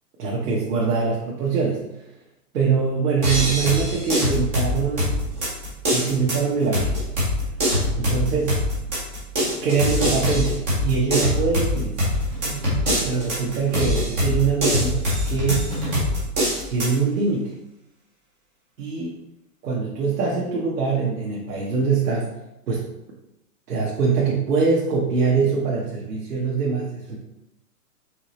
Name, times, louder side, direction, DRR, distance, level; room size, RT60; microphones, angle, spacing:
voice 1, 0.2-1.8 2.5-5.2 5.9-7.0 8.0-8.5 9.6-12.2 13.0-15.7 16.7-17.5 18.8-19.2 19.6-22.3 22.7-22.8 23.7-27.2, right 5 dB, 75° right, -3 dB, 1.1 m, -23 dB
sound 1, 3.2-17.0, left 1 dB, 10° right, 0.4 m, -24 dB
4.8 x 2.9 x 3.0 m, 0.89 s
hypercardioid pair, 140°, 47 cm